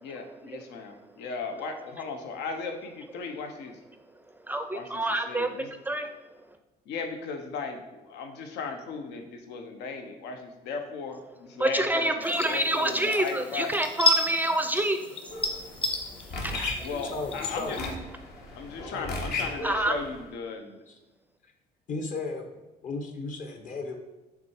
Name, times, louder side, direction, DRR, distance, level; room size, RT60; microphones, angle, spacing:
voice 1, 0.0-3.7 4.7-4.8 5.3-5.7 6.9-11.2 11.5-13.7 16.8-17.8 18.6-20.8, left 4 dB, 85° left, 5 dB, 0.8 m, -36 dB
voice 2, 4.5-5.5 5.9-6.1 11.6-15.0 16.4-16.5 19.6-20.0, right 1 dB, 10° right, 7 dB, 0.4 m, -27 dB
sound 1, 12.2-17.9, left 2 dB, 30° left, 1.2 m, -32 dB
sound 2, 15.3-20.2, left 2 dB, 70° left, 1.4 m, -36 dB
voice 3, 16.9-17.9 18.8-19.2 20.9-21.0 21.9-22.5 22.8-24.0, left 3 dB, 50° left, 4 dB, 1.0 m, -35 dB
6.0 x 3.6 x 4.4 m, 1.1 s
cardioid pair, 110°, 17 cm